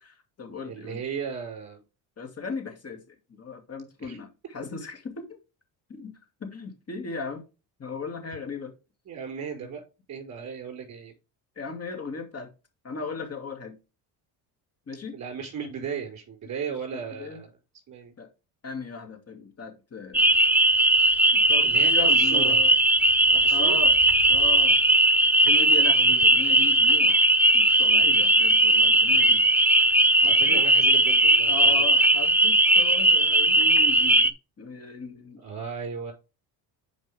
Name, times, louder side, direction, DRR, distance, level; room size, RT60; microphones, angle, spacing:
voice 1, 0.0-1.0 2.2-5.4 5.9-6.1 6.4-7.4 7.8-8.7 9.6-9.7 11.6-12.5 12.8-13.8 14.9-15.2 17.1-17.4 18.2-18.3 18.6-20.3 21.3-22.7 23.5-23.9 24.3-24.8 25.2-27.2 27.5-29.4 30.2-30.6 31.5-35.4, left 4 dB, 35° left, 2.4 m, -37 dB
voice 2, 0.6-1.8 4.0-4.2 9.1-9.8 10.1-11.1 15.1-17.5 17.9-18.1 21.6-22.6 23.2-23.8 30.2-31.8 35.4-36.1, right 6 dB, 40° right, 5.2 m, -36 dB
sound 1, 20.1-34.3, right 1 dB, 5° right, 0.5 m, -19 dB
9.1 x 5.1 x 3.5 m
cardioid pair, 95°, 41 cm